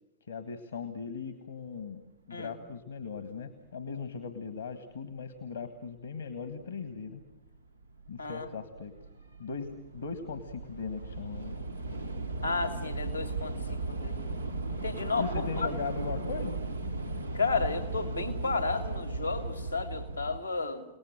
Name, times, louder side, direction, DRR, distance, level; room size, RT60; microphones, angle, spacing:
voice 1, 0.2-7.2 8.1-9.0 9.4-11.7 15.2-16.6, left 5 dB, 75° left, 10 dB, 1.6 m, -39 dB
Train / Subway metro underground, 6.4-6.5 7.3-7.6 7.8-20.4, right 2 dB, 90° right, 1.3 m, -36 dB
voice 2, 12.4-14.2 14.7-15.7 17.3-20.9, left 4 dB, 90° left, 8 dB, 2.5 m, -32 dB
29.5 x 19.0 x 7.5 m, 0.89 s
figure-of-eight pair, 90°, 0 cm